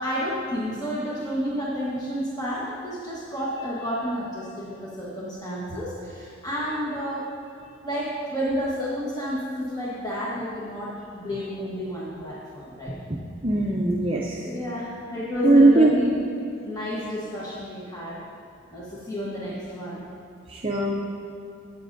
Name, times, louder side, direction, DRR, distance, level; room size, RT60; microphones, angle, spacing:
voice 1, 0.0-7.3 7.8-13.0 14.4-16.1 16.6-18.2 18.7-20.0, equal, 20° left, -8 dB, 1.2 m, -30 dB
voice 2, 13.4-14.5 15.4-15.9 20.5-21.0, right 2 dB, 30° right, -3 dB, 0.6 m, -19 dB
14.5 x 8.5 x 2.6 m, 2.7 s
head